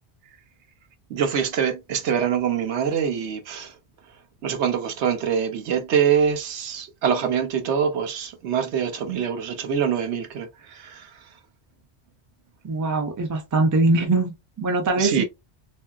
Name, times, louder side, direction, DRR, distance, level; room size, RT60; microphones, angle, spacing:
voice 1, 1.1-3.7 4.4-11.1 15.0-15.2, right 7 dB, 80° right, 1.0 m, -24 dB
voice 2, 12.6-15.2, right 2 dB, 30° right, 0.3 m, -22 dB
2.8 x 2.6 x 2.3 m
omnidirectional pair, 1.2 m